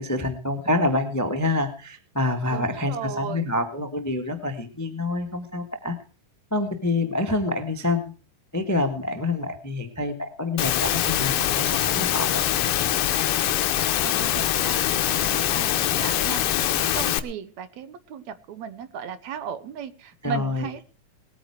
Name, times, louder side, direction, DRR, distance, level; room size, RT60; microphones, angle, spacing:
voice 1, 0.0-6.0 6.5-8.1 8.5-12.4 20.2-20.7, left 2 dB, 10° left, 7 dB, 0.7 m, -27 dB
voice 2, 2.5-3.5 14.0-16.5 16.8-20.8, right 7 dB, 70° right, 13 dB, 2.2 m, -36 dB
Engine / Mechanisms, 10.6-17.2, left 12 dB, 70° left, 1.4 m, -23 dB
20.0 x 9.2 x 4.9 m, 0.37 s
omnidirectional pair, 3.5 m